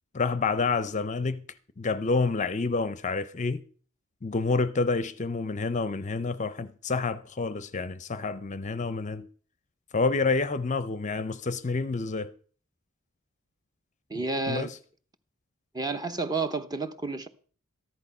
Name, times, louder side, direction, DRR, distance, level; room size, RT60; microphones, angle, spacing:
voice 1, 0.1-1.4 1.8-3.6 4.2-9.3 9.9-12.3 14.1-14.8, left 4 dB, 35° left, 0.6 m, -28 dB
voice 2, 14.1-14.7 15.7-17.3, right 3 dB, 20° right, 0.9 m, -30 dB
14.0 x 11.0 x 5.5 m
head